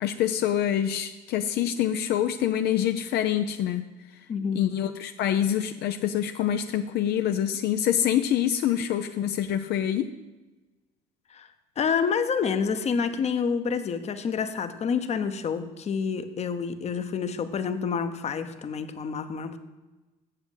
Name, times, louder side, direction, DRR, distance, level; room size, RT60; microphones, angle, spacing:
voice 1, 0.0-3.9 4.5-10.1, left 10 dB, 75° left, 7 dB, 0.6 m, -26 dB
voice 2, 4.3-4.6 11.3-11.5 11.8-19.6, left 6 dB, 40° left, 9 dB, 0.9 m, -28 dB
7.7 x 7.2 x 8.1 m, 1.1 s
cardioid pair, 110°, 17 cm